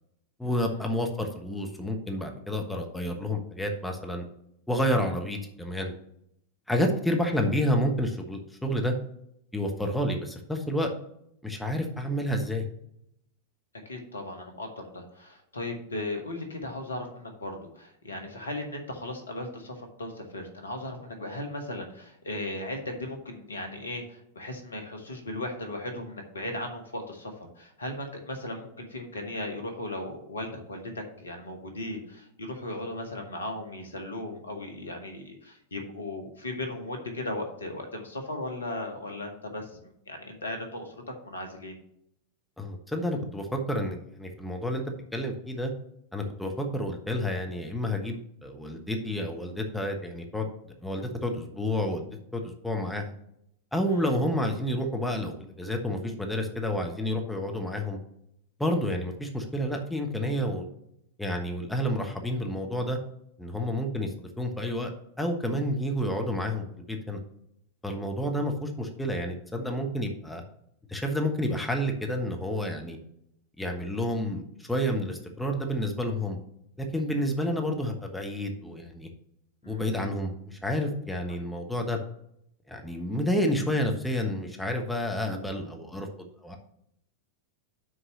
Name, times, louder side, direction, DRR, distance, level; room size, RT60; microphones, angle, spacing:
voice 1, 0.4-4.2 4.7-5.9 6.7-8.9 9.5-10.9 11.4-12.6 42.6-44.8 45.1-45.7 46.1-50.5 50.8-53.1 53.7-58.0 58.6-60.7 61.2-63.0 63.4-64.9 65.2-67.2 67.8-70.4 70.9-73.0 73.6-76.4 76.8-79.1 79.6-82.0 82.7-86.1 86.4-86.6, equal, 5° left, 2 dB, 1.1 m, -30 dB
voice 2, 13.8-40.9 41.2-41.8 53.9-54.0 79.6-79.8, left 2 dB, 75° left, 5 dB, 1.4 m, -37 dB
6.3 x 4.7 x 6.6 m, 0.75 s
figure-of-eight pair, 90°, 0 cm